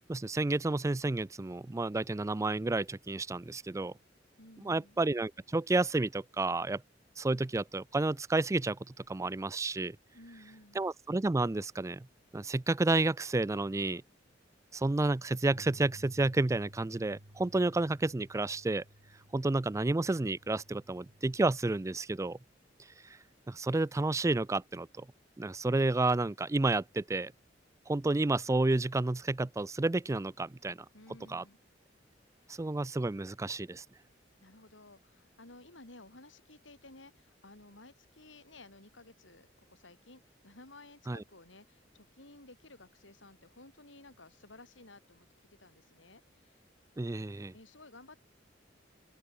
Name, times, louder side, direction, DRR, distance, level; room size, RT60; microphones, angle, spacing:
voice 1, 0.1-3.9 4.6-6.8 7.2-8.8 9.1-10.0 10.8-12.1 12.3-14.0 14.7-18.8 19.3-22.4 23.5-25.1 25.4-27.3 27.9-30.8 31.3-31.4 32.5-33.8 41.1-41.2 47.0-47.5, right 2 dB, 15° right, 0.4 m, -30 dB
voice 2, 4.4-5.0 10.1-10.8 30.9-31.6 32.4-32.6 34.4-46.6 47.5-48.2, left 2 dB, 80° left, 5.0 m, -55 dB
sound 1, 15.5-21.8, right 1 dB, 80° right, 4.1 m, -55 dB
open air
head